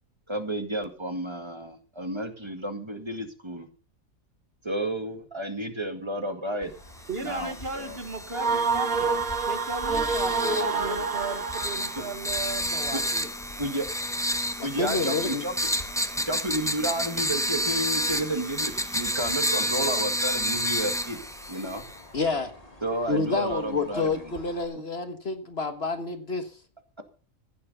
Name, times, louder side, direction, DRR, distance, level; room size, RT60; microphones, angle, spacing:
voice 1, 0.3-3.7 4.6-6.7 7.2-8.0 12.0-12.1 12.9-13.0 13.6-13.9 14.6-18.7 18.9-21.2 21.5-21.8 22.8-24.3, right 1 dB, 20° right, 6 dB, 2.0 m, -31 dB
sound 1, 6.6-24.7, left 1 dB, 25° left, 2.5 m, -47 dB
sound 2, 7.1-22.0, equal, 5° left, 1.0 m, -30 dB
voice 2, 7.1-9.1 9.4-13.3, right 3 dB, 45° right, 8 dB, 1.7 m, -36 dB
sound 3, 8.3-12.1, right 4 dB, 85° right, 2.2 m, -27 dB
voice 3, 14.6-15.4 22.1-22.5 23.1-26.5, left 3 dB, 50° left, 8 dB, 1.7 m, -28 dB
15.0 x 9.5 x 5.5 m, 0.39 s
omnidirectional pair, 1.4 m